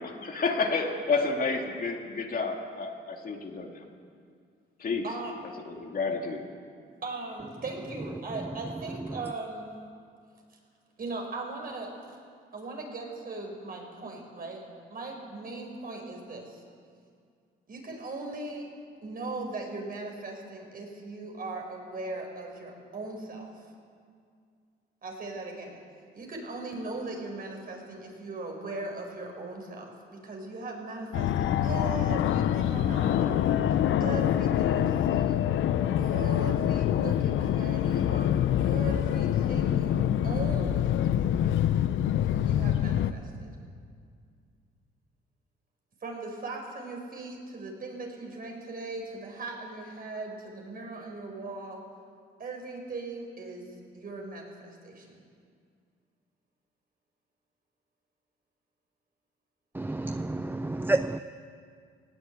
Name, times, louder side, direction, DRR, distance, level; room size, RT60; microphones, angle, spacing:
voice 1, 0.0-3.7 4.8-5.0 5.7-6.5, left 4 dB, 45° left, 2 dB, 2.5 m, -30 dB
voice 2, 7.0-9.7 11.0-11.9 12.5-14.6 14.9-16.6 17.7-18.7 19.0-23.5 25.0-25.8 26.1-33.5 34.0-35.4 36.0-41.0 42.5-43.5 46.0-51.8 52.4-53.7 53.9-55.2, right 2 dB, 45° right, 1 dB, 5.3 m, -39 dB
Fixed-wing aircraft airplane, 31.1-43.1, left 10 dB, 75° left, 0.8 m, -25 dB
voice 3, 59.7-61.2, right 2 dB, 10° right, 10 dB, 0.5 m, -29 dB
19.0 x 16.5 x 8.4 m, 2.2 s
cardioid pair, 90°, 20 cm